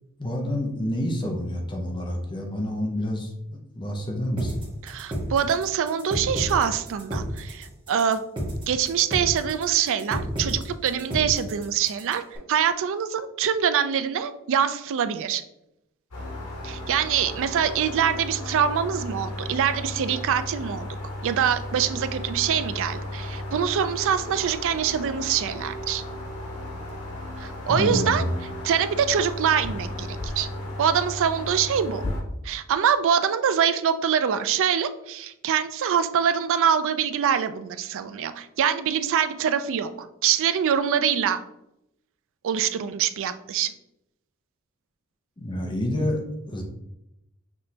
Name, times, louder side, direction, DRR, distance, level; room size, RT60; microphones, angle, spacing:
voice 1, 0.2-3.3 3.7-4.5 27.7-28.3 45.4-46.6, left 1 dB, 20° left, 1 dB, 0.6 m, -28 dB
sound 1, 4.4-12.4, equal, 20° right, 1.3 m, -31 dB
voice 2, 4.8-8.2 8.7-12.2 12.5-15.4 16.6-20.9 21.2-26.0 27.4-28.2 28.6-30.5 30.8-32.0 32.4-41.4 42.4-43.7, right 8 dB, 60° right, 11 dB, 0.4 m, -24 dB
sound 2, 16.1-32.2, left 1 dB, 85° left, 1.2 m, -35 dB
6.0 x 3.2 x 2.8 m, 0.85 s
head